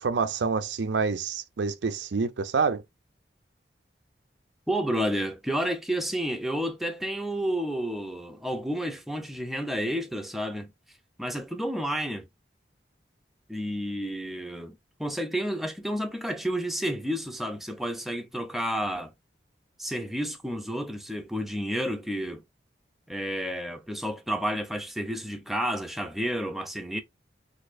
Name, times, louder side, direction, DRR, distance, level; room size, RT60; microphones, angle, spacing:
voice 1, 0.0-2.8, right 5 dB, 90° right, 0.5 m, -27 dB
voice 2, 4.7-10.7 11.2-12.3 13.5-19.1 19.8-22.4 23.1-27.0, equal, ahead, 0.5 m, -31 dB
4.0 x 2.6 x 2.5 m
head